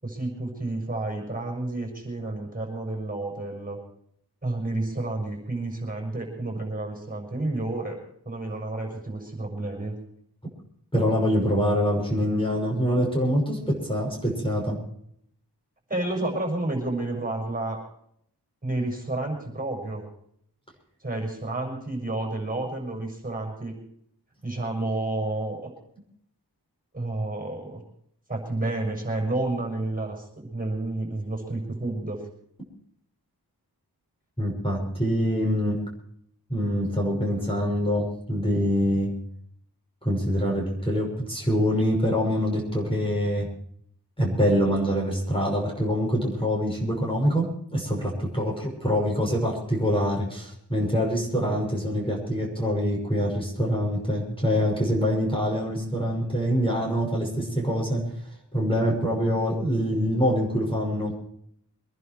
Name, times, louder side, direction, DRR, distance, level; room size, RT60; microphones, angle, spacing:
voice 1, 0.0-3.8 4.4-8.0 8.2-9.9 15.9-17.8 18.6-20.1 21.0-23.7 24.4-25.7 26.9-27.8 28.3-32.2, right 2 dB, 20° right, 0 dB, 6.6 m, -30 dB
voice 2, 10.9-14.8 34.4-35.8 36.5-39.1 40.0-43.5 44.2-58.1 58.5-61.1, equal, 15° left, -2 dB, 6.1 m, -25 dB
24.5 x 11.0 x 4.7 m, 0.68 s
wide cardioid pair, 65°, 41 cm